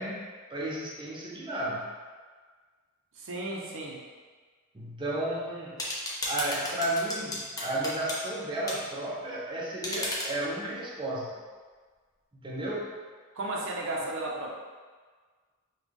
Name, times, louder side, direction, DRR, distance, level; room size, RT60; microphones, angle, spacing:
voice 1, 0.0-1.9 4.7-5.8 6.2-11.4 12.3-12.9, right 1 dB, 20° right, -5 dB, 0.5 m, -33 dB
voice 2, 3.2-4.0 13.4-14.5, right 2 dB, 60° right, -2 dB, 0.7 m, -34 dB
sound 1, 5.8-8.2 8.7-8.8 9.8-10.3, left 1 dB, 15° left, 0.7 m, -33 dB
5.2 x 2.3 x 3.4 m, 1.5 s
head